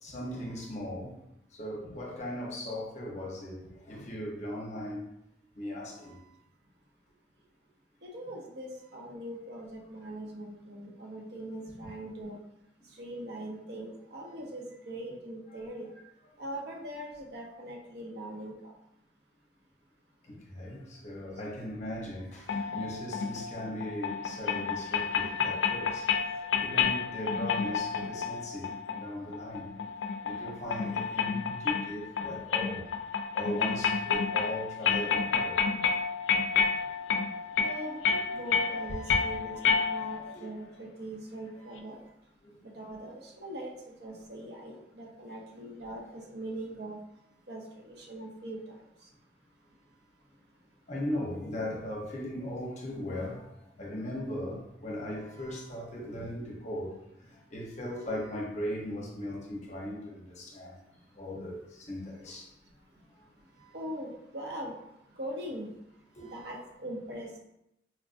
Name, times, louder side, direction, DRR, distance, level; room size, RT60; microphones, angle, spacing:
voice 1, 0.0-1.1 1.6-5.1 5.6-6.2 15.5-15.6 20.3-29.8 30.2-32.9 33.3-35.6 36.5-36.6 38.9-39.1 40.0-40.5 41.6-41.7 42.4-42.6 50.9-53.5 53.8-60.8 61.2-62.5 63.6-63.7 66.2-66.5, left 1 dB, 40° left, -2 dB, 0.7 m, -38 dB
voice 2, 8.0-12.4 13.0-16.0 16.4-18.7 37.6-42.0 42.7-47.0 47.5-48.6 63.7-64.8 65.2-65.7 66.3-67.4, right 1 dB, 65° right, -1 dB, 0.7 m, -41 dB
sound 1, 22.5-40.3, left 6 dB, 90° left, 0.3 m, -30 dB
4.3 x 2.4 x 2.4 m, 0.82 s
head